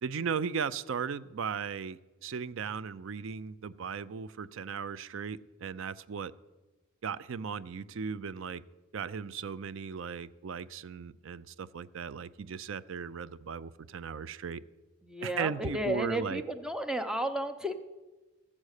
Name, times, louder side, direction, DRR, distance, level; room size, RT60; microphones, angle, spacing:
voice 1, 0.0-6.3 7.0-8.6 8.9-14.6 15.2-16.4, right 6 dB, 60° right, 17 dB, 0.4 m, -37 dB
voice 2, 15.1-17.8, equal, 5° right, 8 dB, 0.6 m, -33 dB
14.0 x 7.3 x 6.5 m, 1.2 s
head